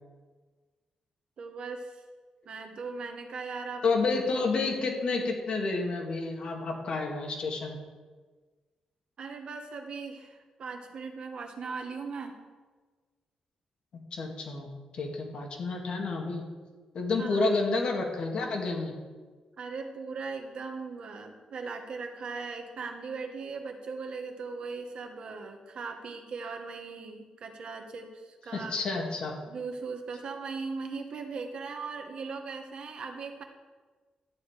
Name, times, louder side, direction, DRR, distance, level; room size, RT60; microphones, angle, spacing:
voice 1, 1.4-2.0 2.4-3.9 9.2-12.3 17.2-17.5 19.6-28.9 29.5-33.4, right 4 dB, 50° right, 4 dB, 1.3 m, -39 dB
voice 2, 3.8-7.8 13.9-14.7 14.9-16.4 16.9-18.9 28.5-29.3, left 3 dB, 50° left, 1 dB, 2.1 m, -30 dB
12.5 x 9.5 x 4.9 m, 1.4 s
wide cardioid pair, 175°, 2 cm